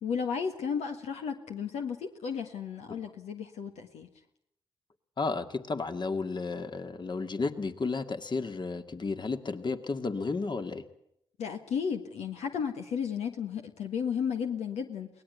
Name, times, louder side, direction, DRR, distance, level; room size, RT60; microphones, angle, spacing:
voice 1, 0.0-4.1 11.4-15.1, left 7 dB, 80° left, 5 dB, 1.6 m, -33 dB
voice 2, 5.2-10.8, left 4 dB, 40° left, 8 dB, 2.1 m, -33 dB
23.5 x 18.5 x 8.2 m, 0.76 s
supercardioid pair, 45°, 11 cm